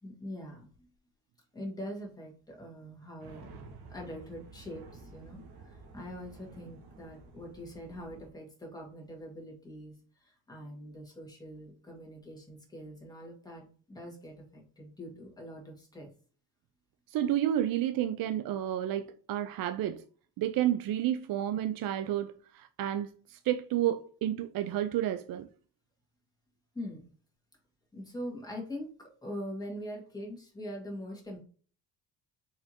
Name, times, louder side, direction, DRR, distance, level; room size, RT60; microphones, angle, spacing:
voice 1, 0.0-0.9 1.5-3.5 3.9-16.1 26.7-27.0 27.9-31.4, equal, 10° left, 1.8 m, -43 dB
sound 1, 3.2-8.3, right 3 dB, 90° right, 1.1 m, -51 dB
voice 2, 17.1-20.0 20.4-25.5, right 12 dB, 60° right, 0.5 m, -31 dB
4.7 x 3.4 x 2.9 m
cardioid pair, 125°, 39 cm